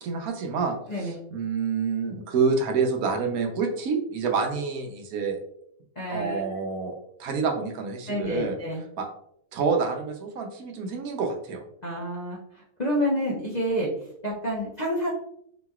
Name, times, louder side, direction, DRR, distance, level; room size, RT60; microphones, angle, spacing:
voice 1, 0.0-5.4 6.1-8.6 9.0-9.1 9.5-11.6, right 5 dB, 70° right, 3 dB, 1.1 m, -28 dB
voice 2, 6.0-6.5 8.1-8.8 11.8-12.4 12.8-13.9 14.2-15.1, equal, 40° left, -4 dB, 0.6 m, -28 dB
4.8 x 3.0 x 2.3 m, 0.72 s
omnidirectional pair, 1.6 m